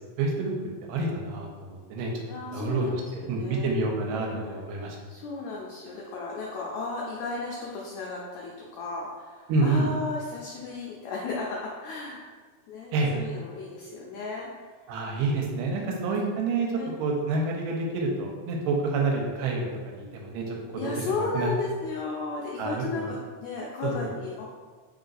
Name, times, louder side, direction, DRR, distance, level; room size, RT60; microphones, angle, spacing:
voice 1, 0.2-0.5 0.9-5.0 9.5-9.9 12.9-13.1 14.9-16.7 17.0-20.6 21.0-21.5 22.6-23.1 23.8-23.9, right 3 dB, 90° right, 0 dB, 2.3 m, -28 dB
voice 2, 2.3-3.7 4.1-12.2 12.7-14.7 16.8-16.9 20.8-24.4, left 3 dB, 85° left, -3 dB, 1.6 m, -35 dB
4.1 x 3.9 x 2.5 m, 1.5 s
omnidirectional pair, 3.8 m